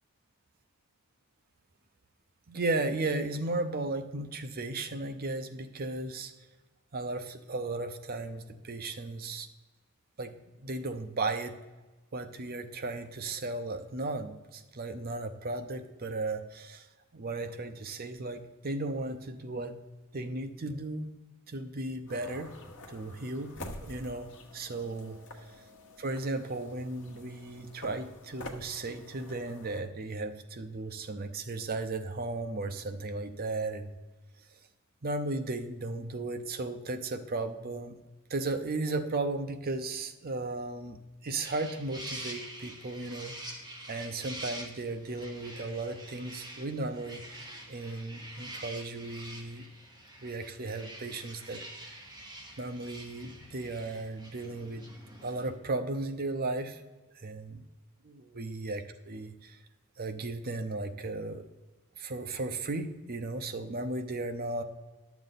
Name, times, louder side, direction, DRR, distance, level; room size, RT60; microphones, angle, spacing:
voice 1, 2.5-6.3 6.9-9.5 10.2-10.3 10.6-11.5 12.1-16.9 17.1-19.8 20.1-21.1 21.5-22.5 22.9-23.5 23.8-25.2 26.0-33.9 35.0-38.0 38.3-43.3 43.9-49.6 50.2-52.0 52.6-54.9 55.2-56.8 57.1-57.6 58.0-59.6 60.0-61.4 62.0-64.6, right 2 dB, 45° right, 8 dB, 0.7 m, -35 dB
sound 1, 22.1-29.8, left 1 dB, 60° left, 1.2 m, -48 dB
sound 2, 41.4-55.5, right 1 dB, 20° right, 1.3 m, -46 dB
11.0 x 7.0 x 4.0 m, 1.2 s
head